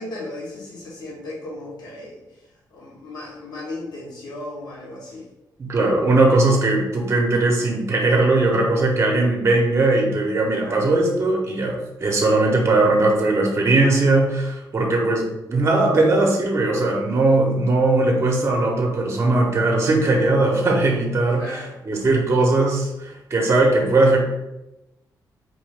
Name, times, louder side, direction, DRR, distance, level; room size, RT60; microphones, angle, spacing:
voice 1, 0.0-2.1 2.7-5.3 10.6-11.0 21.3-21.8, left 1 dB, 65° left, -6 dB, 1.3 m, -35 dB
voice 2, 5.6-24.2, right 2 dB, 40° right, 0 dB, 0.9 m, -19 dB
4.4 x 2.6 x 3.2 m, 0.95 s
cardioid pair, 110°, 7 cm